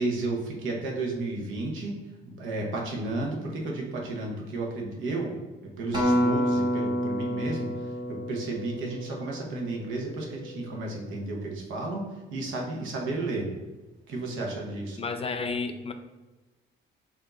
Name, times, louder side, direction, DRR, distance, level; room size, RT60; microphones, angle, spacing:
voice 1, 0.0-2.0 2.2-5.4 5.6-13.5 14.1-15.0, right 2 dB, 85° right, 0 dB, 1.0 m, -32 dB
Acoustic guitar, 5.9-10.3 11.0-11.1, equal, 20° right, 1.2 m, -28 dB
voice 2, 15.0-15.9, left 4 dB, 30° left, 8 dB, 0.4 m, -31 dB
4.7 x 2.8 x 3.7 m, 1.2 s
cardioid pair, 90°, 20 cm